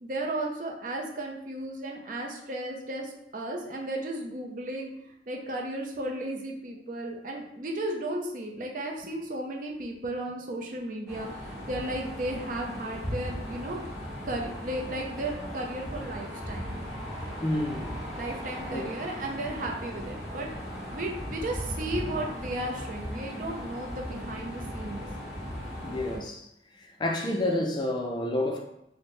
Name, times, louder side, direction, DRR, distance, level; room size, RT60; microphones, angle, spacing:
voice 1, 0.0-4.9 5.3-13.8 14.2-16.7 18.2-20.5 20.9-25.0, right 1 dB, 45° right, 0.5 m, -34 dB
sound 1, 11.1-26.2, equal, 5° right, 1.0 m, -37 dB
voice 2, 17.4-18.0 18.7-18.9 25.8-26.5 26.8-28.6, left 1 dB, 25° left, 0.4 m, -29 dB
4.3 x 2.1 x 3.2 m
head